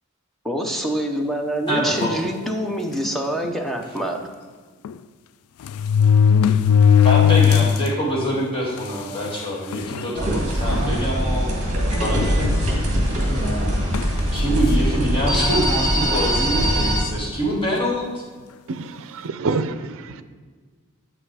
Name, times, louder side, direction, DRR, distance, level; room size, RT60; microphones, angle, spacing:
voice 1, 0.4-4.2, right 1 dB, ahead, 0.8 m, -25 dB
voice 2, 1.7-2.1 7.0-11.5 12.0-12.7 14.3-15.7 15.9-18.1, equal, 25° left, 2.2 m, -25 dB
sound 1, 2.0-2.3 3.0-3.1 3.4-3.5 4.8-4.9 5.6-7.9 8.3-8.4 9.3-9.4 9.7-10.1 10.7-10.9 12.1-13.0 13.9-14.2, left 8 dB, 70° left, 0.3 m, -17 dB
sound 2, 10.2-17.0, equal, 35° right, 1.9 m, -21 dB
voice 3, 18.7-20.2, right 3 dB, 65° right, 0.5 m, -27 dB
8.5 x 5.8 x 4.8 m
head